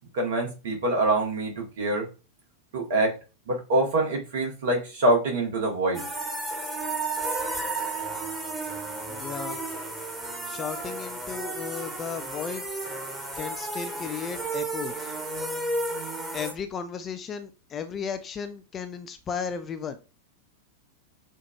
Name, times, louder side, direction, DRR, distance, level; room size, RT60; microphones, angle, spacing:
voice 1, 0.1-2.1 2.7-3.1 3.5-6.0, right 2 dB, 55° right, 1 dB, 1.4 m, -25 dB
sound 1, 5.9-16.5, right 2 dB, 15° right, 1.3 m, -33 dB
voice 2, 9.1-9.6 10.5-12.7 13.4-15.1 16.3-20.0, left 6 dB, 25° left, 9 dB, 0.5 m, -35 dB
6.5 x 2.5 x 2.4 m, 0.30 s
figure-of-eight pair, 90°, 0 cm